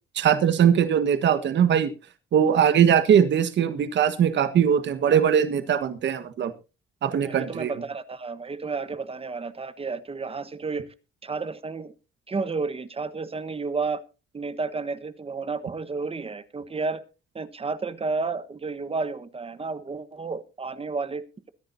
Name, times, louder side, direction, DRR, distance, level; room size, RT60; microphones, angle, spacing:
voice 1, 0.1-1.9 2.3-6.5 7.0-7.7, right 8 dB, 65° right, 11 dB, 1.5 m, -21 dB
voice 2, 7.2-10.9 11.2-11.9 12.3-14.0 14.3-17.0 17.3-21.2, right 4 dB, 30° right, 13 dB, 1.3 m, -31 dB
22.5 x 10.5 x 2.7 m, 0.31 s
cardioid pair, 90°, 20 cm